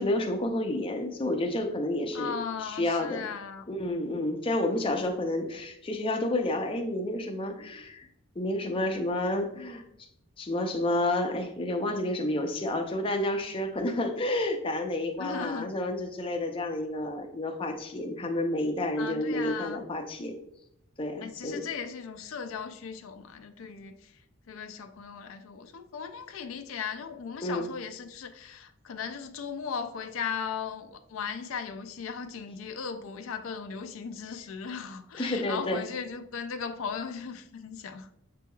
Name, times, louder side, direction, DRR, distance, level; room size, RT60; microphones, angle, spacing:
voice 1, 0.0-2.3 2.6-3.3 3.7-8.1 8.4-9.8 10.4-20.4 21.0-21.7 27.4-27.7 35.2-35.8, left 1 dB, 25° left, 0.5 m, -30 dB
voice 2, 2.1-3.7 15.2-15.7 19.0-19.8 21.2-24.1 24.5-38.1, left 6 dB, 85° left, 0.4 m, -37 dB
6.7 x 3.0 x 2.3 m
head